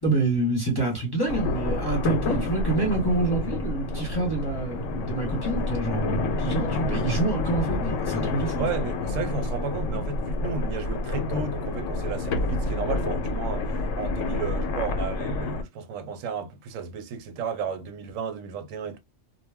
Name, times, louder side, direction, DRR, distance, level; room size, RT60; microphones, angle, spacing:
voice 1, 0.0-8.6, right 3 dB, 20° left, 0.8 m, -27 dB
sound 1, 1.3-15.6, left 2 dB, 80° left, 1.0 m, -28 dB
voice 2, 8.6-19.0, right 5 dB, 85° right, 0.9 m, -33 dB
2.3 x 2.2 x 3.3 m
omnidirectional pair, 1.3 m